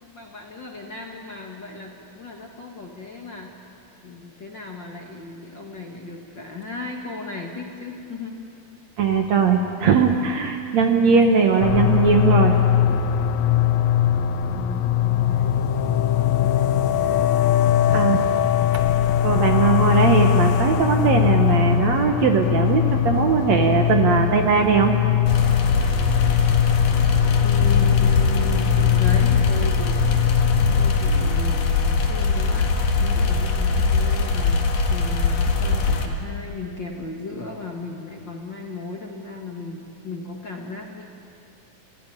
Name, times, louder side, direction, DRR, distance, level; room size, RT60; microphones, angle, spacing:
voice 1, 0.0-3.5 4.0-8.3 14.4-16.7 27.4-30.0 30.8-34.6 34.9-41.1, left 3 dB, 40° left, 0 dB, 1.9 m, -35 dB
voice 2, 9.0-12.5 17.9-18.2 19.2-24.9, right 5 dB, 60° right, 4 dB, 2.1 m, -19 dB
sound 1, 11.6-31.0, left 10 dB, 85° left, 1.6 m, -20 dB
sound 2, 25.3-36.1, left 4 dB, 60° left, 2.9 m, -22 dB
30.0 x 15.5 x 10.0 m, 2.5 s
omnidirectional pair, 4.2 m